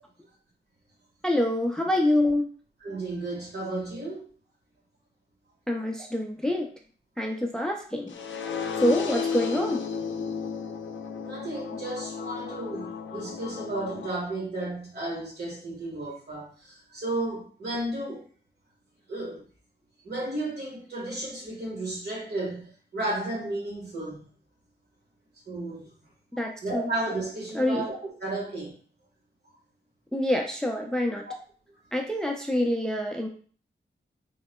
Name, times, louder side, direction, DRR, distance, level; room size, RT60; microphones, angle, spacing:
voice 1, 1.2-2.5 5.7-6.7 7.2-8.2 8.8-9.8 26.4-26.9 27.5-27.9 30.1-31.3 31.9-33.3, left 1 dB, 5° left, 2 dB, 0.4 m, -26 dB
voice 2, 2.8-4.2 10.2-10.3 11.2-18.2 19.1-19.4 20.0-24.3 25.5-25.9 26.6-28.7, right 2 dB, 60° right, -4 dB, 1.5 m, -33 dB
sound 1, 8.1-14.1, left 6 dB, 85° left, 0.4 m, -33 dB
3.6 x 3.2 x 2.2 m, 0.43 s
wide cardioid pair, 140°, 19 cm